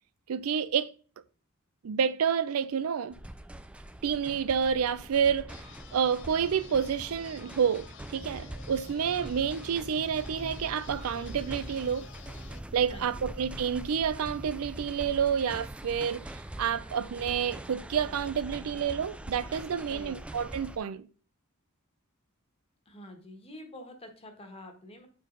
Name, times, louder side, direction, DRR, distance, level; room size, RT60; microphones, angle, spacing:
voice 1, 0.3-0.9 1.8-3.2 4.0-5.6 5.9-12.1 12.7-21.1, right 7 dB, 80° right, 0.4 m, -29 dB
sound 1, 3.1-20.8, right 1 dB, 5° right, 0.3 m, -43 dB
sound 2, 5.5-12.6, left 8 dB, 60° left, 0.5 m, -52 dB
voice 2, 12.9-13.3 19.9-20.3 22.9-25.1, left 1 dB, 30° left, 1.3 m, -47 dB
6.4 x 4.7 x 3.8 m
head